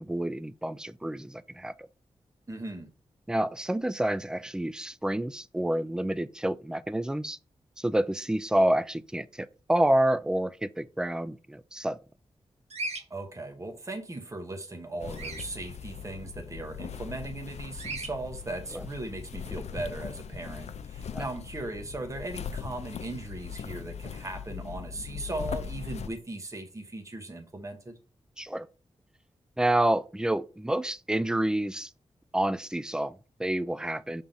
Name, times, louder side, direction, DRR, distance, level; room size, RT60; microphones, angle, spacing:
voice 1, 0.0-1.7 3.3-7.4 7.8-12.0 18.7-18.9 21.1-21.2 28.4-28.7 29.6-31.9 32.3-34.2, right 1 dB, 5° right, 0.4 m, -28 dB
voice 2, 2.5-2.9 13.1-28.0, right 2 dB, 30° right, 1.1 m, -38 dB
Bird vocalization bird call bird song, 12.7-13.0 15.1-15.5 17.8-18.1, right 2 dB, 70° right, 1.2 m, -35 dB
sound 1, 15.0-26.1, left 7 dB, 75° left, 0.5 m, -40 dB
5.7 x 3.6 x 5.2 m
cardioid pair, 60°, 11 cm